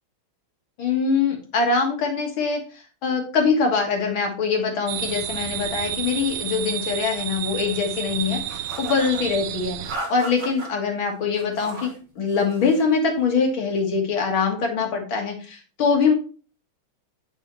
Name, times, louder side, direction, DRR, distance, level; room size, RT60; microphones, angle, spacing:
voice 1, 0.8-11.9 12.2-16.1, left 5 dB, 70° left, 2 dB, 2.4 m, -23 dB
sound 1, 4.9-10.0, right 11 dB, 75° right, 1.4 m, -31 dB
sound 2, 8.5-9.2 9.8-10.7 11.3-12.0 12.3-12.9, right 2 dB, 55° right, 2.1 m, -36 dB
7.4 x 5.7 x 3.1 m, 0.38 s
omnidirectional pair, 2.3 m